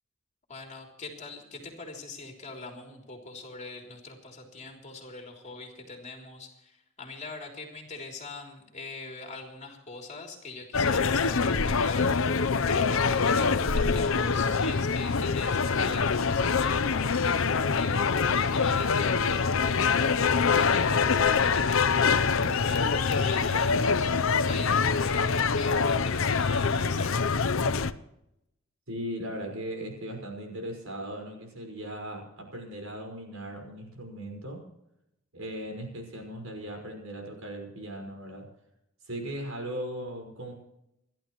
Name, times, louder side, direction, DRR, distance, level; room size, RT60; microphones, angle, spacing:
voice 1, 0.5-12.1 12.6-27.2, left 3 dB, 35° left, 1 dB, 3.4 m, -42 dB
sound 1, 10.7-27.9, left 5 dB, 75° left, 0.7 m, -25 dB
voice 2, 28.9-34.6 35.3-38.5 39.0-40.5, equal, 90° right, 2 dB, 5.4 m, -38 dB
28.5 x 12.0 x 3.1 m, 0.83 s
head